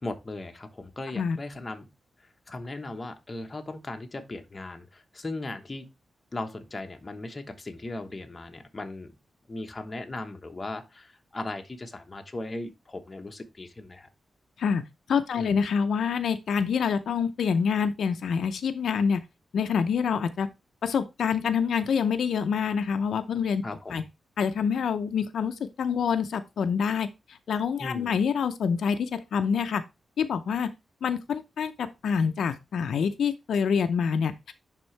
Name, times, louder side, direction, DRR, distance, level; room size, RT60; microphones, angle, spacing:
voice 1, 0.0-1.9 2.5-5.9 6.3-9.1 9.5-14.1 15.3-15.6 23.6-24.0 27.8-28.1, left 2 dB, 25° left, 1.1 m, -37 dB
voice 2, 15.1-19.2 19.5-20.5 20.8-23.6 23.9-24.0 24.4-29.8 30.2-30.7 31.0-34.5, left 6 dB, 85° left, 0.6 m, -26 dB
10.5 x 3.7 x 3.2 m
wide cardioid pair, 130°, 0 cm